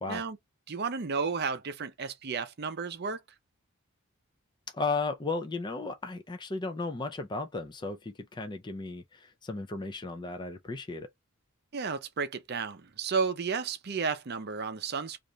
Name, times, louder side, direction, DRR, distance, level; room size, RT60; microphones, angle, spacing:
voice 1, 0.7-3.2 11.7-15.2, right 5 dB, 50° right, 0.6 m, -32 dB
voice 2, 4.7-11.1, left 3 dB, 20° left, 0.4 m, -35 dB
3.1 x 2.5 x 3.9 m
head